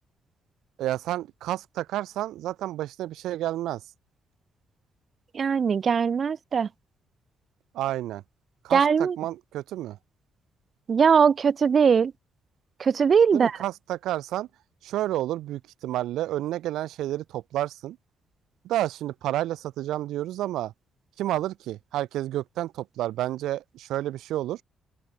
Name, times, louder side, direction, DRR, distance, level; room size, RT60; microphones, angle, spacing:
voice 1, 0.8-3.8 7.7-8.2 8.6-10.0 13.3-14.5 14.8-18.0 18.6-20.7 21.2-24.6, right 14 dB, 85° right, 1.4 m, -30 dB
voice 2, 5.3-6.7 8.7-9.2 10.9-12.1 12.8-13.5, right 6 dB, 45° right, 0.5 m, -20 dB
open air
cardioid pair, 90°, 0 cm